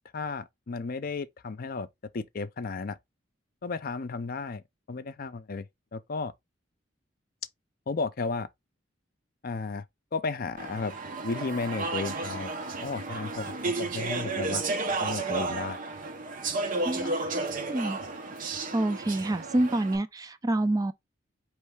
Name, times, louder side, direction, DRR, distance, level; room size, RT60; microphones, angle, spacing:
voice 1, 0.1-1.9 2.1-3.0 3.6-4.6 4.9-5.7 5.9-6.3 7.9-8.5 9.4-9.8 10.1-10.9 11.2-12.5 12.8-14.6 15.0-15.8 17.0-17.1, left 4 dB, 50° left, 0.5 m, -33 dB
Speech / Chatter, 10.6-20.0, right 3 dB, 45° right, 0.8 m, -32 dB
voice 2, 16.9-18.0 18.7-20.9, right 1 dB, 20° right, 0.3 m, -28 dB
4.6 x 3.1 x 3.3 m
head